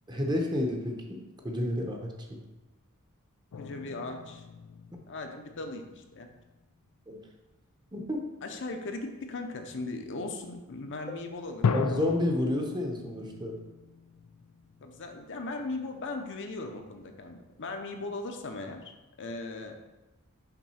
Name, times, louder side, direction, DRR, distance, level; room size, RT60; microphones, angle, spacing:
voice 1, 0.1-2.4 7.1-7.2 7.9-8.2 11.7-13.6, left 1 dB, 20° right, 2 dB, 0.9 m, -30 dB
sound 1, 3.5-6.5 7.0-7.4 11.6-16.0, left 5 dB, 85° left, 0.4 m, -37 dB
voice 2, 3.5-4.5 5.1-6.3 8.4-11.8 14.8-18.9 19.2-19.8, left 2 dB, 55° left, 4 dB, 0.7 m, -38 dB
5.9 x 3.9 x 5.6 m, 1.1 s
head